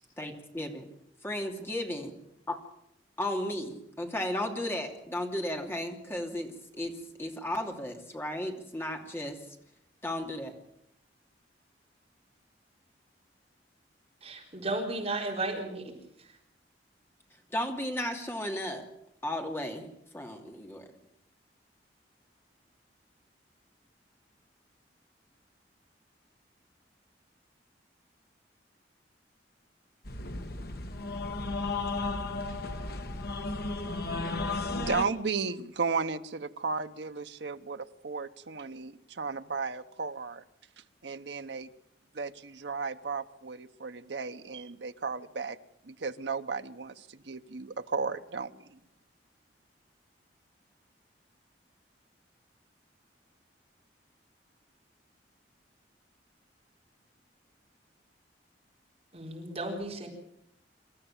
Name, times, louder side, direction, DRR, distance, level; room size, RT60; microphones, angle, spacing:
voice 1, 0.2-0.8 1.2-2.1 2.5-2.6 3.2-9.4 10.0-10.5 17.5-18.9 19.2-19.9 20.1-20.9, left 1 dB, 15° left, 2 dB, 2.7 m, -34 dB
voice 2, 14.2-15.9 59.1-60.1, right 2 dB, 35° right, 0 dB, 4.2 m, -34 dB
sound 1, 30.0-35.0, left 3 dB, 60° left, 1.6 m, -34 dB
voice 3, 34.7-40.4 41.0-41.7 42.1-45.6 45.8-48.8, right 4 dB, 75° right, 9 dB, 1.0 m, -34 dB
26.5 x 13.5 x 7.4 m, 0.76 s
head